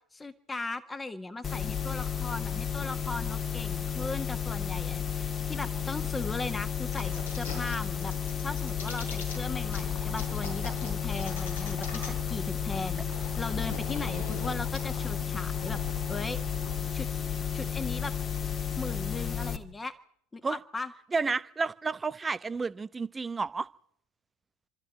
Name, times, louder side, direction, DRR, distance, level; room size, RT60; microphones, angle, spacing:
voice 1, 0.1-15.8 16.1-16.4 16.7-17.2 17.5-18.1 18.8-19.9 20.3-20.9, left 3 dB, 15° left, 1.6 m, -38 dB
sound 1, 1.4-19.6, left 8 dB, 35° left, 1.9 m, -32 dB
sound 2, 6.9-7.7 8.0-9.4 9.7-9.8 10.1-12.3 12.6-12.7 12.9-14.8, left 3 dB, 80° left, 6.9 m, -42 dB
sound 3, 9.4-16.8, left 6 dB, 55° left, 7.2 m, -44 dB
voice 2, 21.1-23.7, right 4 dB, 20° right, 0.9 m, -31 dB
28.0 x 13.0 x 8.9 m
figure-of-eight pair, 75°, 0 cm